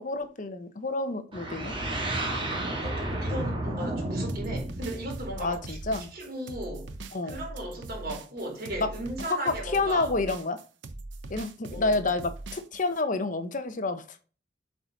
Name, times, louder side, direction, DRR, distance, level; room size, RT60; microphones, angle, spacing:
voice 1, 0.0-1.8 5.4-6.1 7.1-7.4 8.8-8.9 9.3-10.6 11.3-14.0, left 3 dB, 45° left, 0.9 m, -29 dB
sound 1, 1.3-6.2, right 1 dB, 30° right, 2.8 m, -32 dB
voice 2, 2.7-5.8 6.1-6.9 7.2-10.1 11.7-12.0, right 1 dB, 55° right, 4.1 m, -36 dB
sound 2, 4.3-13.0, right 2 dB, 90° right, 0.8 m, -41 dB
8.1 x 4.9 x 4.0 m
head